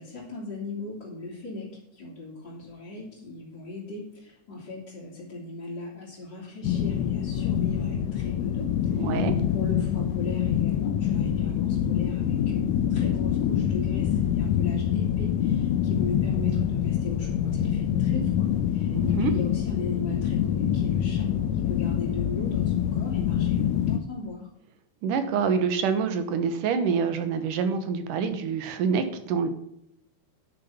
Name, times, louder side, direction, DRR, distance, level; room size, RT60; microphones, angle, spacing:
voice 1, 0.0-9.2 9.5-24.5, left 2 dB, 35° left, -4 dB, 3.3 m, -38 dB
sound 1, 6.6-24.0, left 9 dB, 80° left, 1.6 m, -25 dB
voice 2, 9.0-9.3 18.9-19.3 25.0-29.5, right 6 dB, 80° right, 9 dB, 2.7 m, -26 dB
10.0 x 6.7 x 7.0 m, 0.76 s
omnidirectional pair, 3.7 m